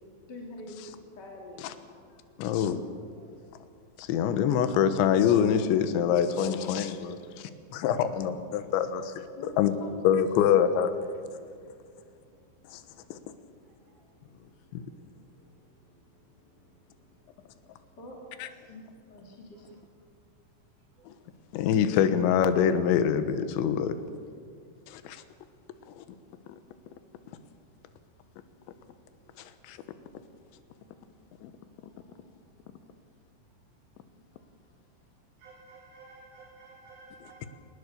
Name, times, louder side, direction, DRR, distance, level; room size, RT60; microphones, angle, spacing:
voice 1, 0.3-1.8 2.1-2.4 9.4-9.5 9.8-10.2 11.5-11.6 12.0-12.4 12.7-13.0 14.0-14.3 16.6-16.7 17.4-18.2 18.5-19.7, left 2 dB, 35° left, -1 dB, 1.9 m, -46 dB
voice 2, 2.4-2.8 4.0-9.2 9.6-9.7 10.0-10.9 12.7-12.8 13.1-13.2 14.7-14.8 18.4-18.5 21.1-21.2 21.5-23.9 24.9-25.2 26.0-26.1 29.7-29.8 31.4-31.5, left 8 dB, 75° left, 9 dB, 3.3 m, -25 dB
voice 3, 35.4-37.5, right 3 dB, 55° right, 0 dB, 3.6 m, -54 dB
23.0 x 19.5 x 6.8 m, 2.2 s
omnidirectional pair, 5.7 m